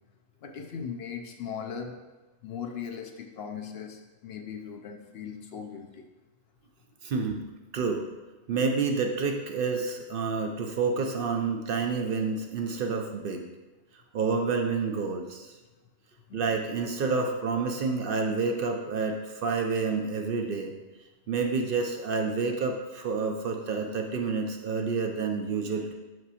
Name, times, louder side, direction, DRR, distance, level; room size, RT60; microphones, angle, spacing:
voice 1, 0.4-2.0 2.4-6.1 16.3-16.4, left 7 dB, 65° left, 4 dB, 0.8 m, -38 dB
voice 2, 7.0-7.4 7.7-8.0 8.5-13.5 14.1-15.5 16.3-20.7 21.3-25.9, right 4 dB, 60° right, 3 dB, 0.7 m, -29 dB
6.1 x 5.7 x 2.9 m, 1.2 s
omnidirectional pair, 1.1 m